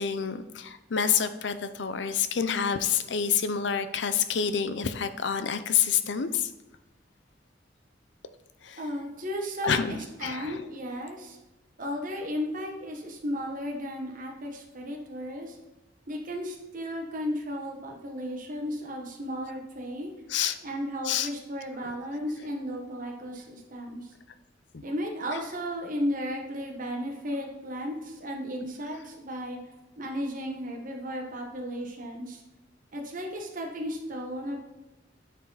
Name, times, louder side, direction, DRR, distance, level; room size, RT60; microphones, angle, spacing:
voice 1, 0.0-6.5 8.6-8.8 9.6-10.6 20.3-20.6 21.0-21.3 21.8-21.9 24.7-24.8, left 7 dB, 65° left, 11 dB, 0.6 m, -28 dB
voice 2, 8.8-9.8 10.2-11.4 11.8-15.6 16.1-20.1 20.6-24.1 24.8-29.6 30.0-32.4 32.9-34.6, equal, 45° right, 0 dB, 1.2 m, -34 dB
9.1 x 4.6 x 4.0 m, 1.1 s
head